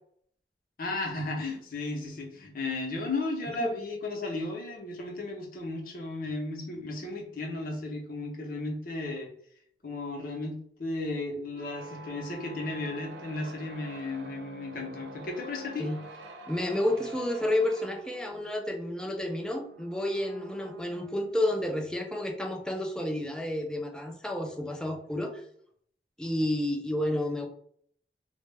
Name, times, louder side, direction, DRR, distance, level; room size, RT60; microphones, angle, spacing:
voice 1, 0.8-9.3 9.8-15.9, left 2 dB, 50° left, 1 dB, 0.6 m, -34 dB
sound 1, 11.5-21.8, right 1 dB, 70° right, 0.4 m, -47 dB
voice 2, 16.5-25.5 26.2-27.5, left 1 dB, 5° left, 2 dB, 0.3 m, -30 dB
2.2 x 2.1 x 3.2 m, 0.64 s
head